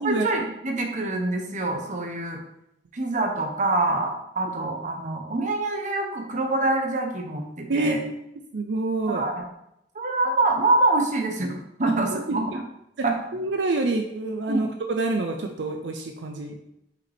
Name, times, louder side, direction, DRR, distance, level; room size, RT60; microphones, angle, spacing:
voice 1, 0.0-2.4 2.9-8.0 9.1-9.4 9.9-12.4 13.0-13.1 14.5-14.7, right 2 dB, 45° right, 3 dB, 0.9 m, -25 dB
voice 2, 7.7-8.1 8.5-9.3 12.1-12.6 13.3-16.6, right 2 dB, 75° right, 4 dB, 0.5 m, -27 dB
5.5 x 5.0 x 3.5 m, 0.81 s
head